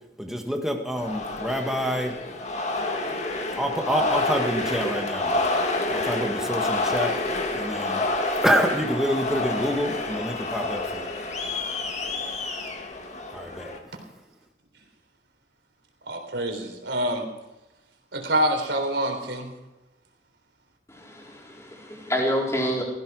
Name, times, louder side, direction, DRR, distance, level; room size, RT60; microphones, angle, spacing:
voice 1, 0.2-2.1 3.6-5.5 5.9-7.1 7.5-8.0 8.4-11.0 13.6-13.7, equal, ahead, 2 dB, 1.6 m, -27 dB
sound 1, 1.0-13.8, left 2 dB, 40° left, 1.9 m, -28 dB
voice 2, 16.1-17.3 18.1-19.5, right 1 dB, 80° right, 4 dB, 3.7 m, -26 dB
voice 3, 20.9-22.8, equal, 15° left, -3 dB, 4.3 m, -28 dB
16.5 x 15.5 x 4.8 m, 0.98 s
head